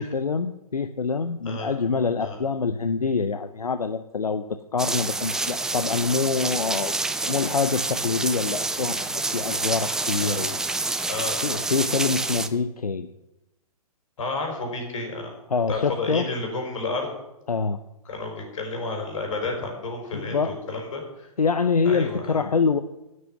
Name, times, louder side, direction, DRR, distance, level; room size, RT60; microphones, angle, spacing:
voice 1, 0.0-7.0 7.2-10.6 11.4-13.1 15.5-16.3 17.5-17.8 20.1-20.6 21.4-22.8, left 5 dB, 85° left, 10 dB, 0.7 m, -25 dB
sound 1, 4.8-12.5, right 2 dB, 5° right, 0.4 m, -28 dB
voice 2, 10.2-10.5 11.1-11.6 14.2-15.4 15.7-17.1 18.1-21.3 21.8-22.4, left 3 dB, 60° left, 3 dB, 4.5 m, -31 dB
11.0 x 6.5 x 9.1 m, 0.93 s
figure-of-eight pair, 125°, 19 cm